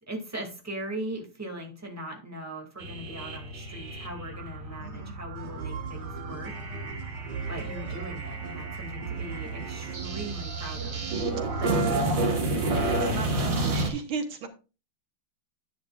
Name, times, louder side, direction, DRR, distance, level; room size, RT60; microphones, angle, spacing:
voice 1, 0.1-6.5 7.5-11.0, right 1 dB, 5° right, 2 dB, 2.1 m, -39 dB
sound 1, 2.8-13.9, right 2 dB, 40° right, 1.9 m, -31 dB
voice 2, 4.8-5.1 11.6-12.2 12.4-14.5, right 5 dB, 75° right, 7 dB, 1.9 m, -37 dB
sound 2, 5.4-12.4, right 6 dB, 55° right, 1.5 m, -39 dB
10.5 x 10.0 x 2.4 m, 0.31 s
omnidirectional pair, 2.4 m